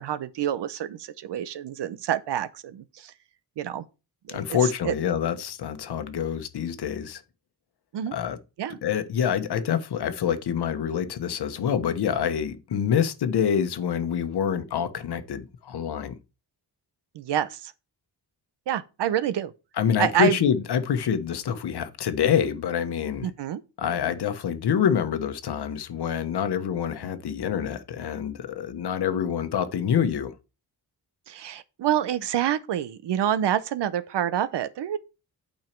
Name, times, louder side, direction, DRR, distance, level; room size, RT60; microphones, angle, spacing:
voice 1, 0.0-3.1 3.6-3.8 4.3-4.9 7.9-8.2 8.6-8.8 17.1-17.7 18.7-19.5 20.0-20.4 23.2-23.6 31.3-35.0, right 10 dB, 80° right, 0.8 m, -27 dB
voice 2, 4.3-7.2 8.1-8.4 8.8-16.1 19.8-23.3 23.8-30.3, left 8 dB, 70° left, 1.1 m, -26 dB
9.0 x 5.6 x 4.5 m
wide cardioid pair, 135°, 41 cm